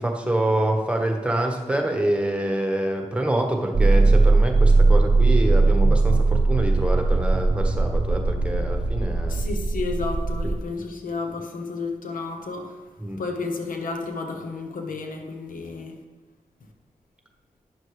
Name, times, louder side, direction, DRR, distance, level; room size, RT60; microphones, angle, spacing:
voice 1, 0.0-9.4 13.0-13.2, right 1 dB, 10° right, 3 dB, 1.4 m, -26 dB
sound 1, 3.7-10.6, right 3 dB, 40° right, 0.7 m, -19 dB
voice 2, 9.3-12.8 13.2-15.9, left 3 dB, 85° left, 4 dB, 0.8 m, -32 dB
9.7 x 6.5 x 3.2 m, 1.4 s
cardioid pair, 40°, 14 cm